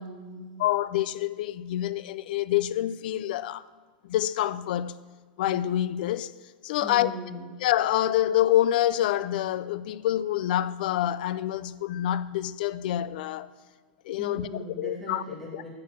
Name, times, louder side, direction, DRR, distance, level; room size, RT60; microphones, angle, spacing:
voice 1, 0.0-0.6 6.8-7.5 14.2-15.7, left 1 dB, 5° left, 1.8 m, -39 dB
voice 2, 0.6-3.6 4.0-5.0 5.4-6.3 6.6-7.1 7.6-13.5 14.0-15.2 15.5-15.6, left 13 dB, 70° left, 0.3 m, -27 dB
8.5 x 4.3 x 5.9 m
supercardioid pair, 135°, 5 cm